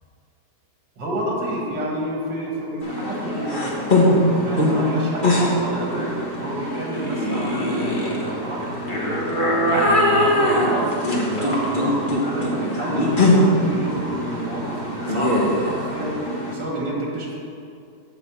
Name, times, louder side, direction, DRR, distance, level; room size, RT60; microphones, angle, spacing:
voice 1, 1.0-6.1 6.4-9.3 9.6-16.1 16.5-17.3, right 1 dB, 75° right, -2 dB, 2.3 m, -29 dB
sound 1, 2.8-16.5, left 1 dB, 30° left, 1.1 m, -22 dB
10.5 x 3.8 x 7.3 m, 2.5 s
omnidirectional pair, 2.0 m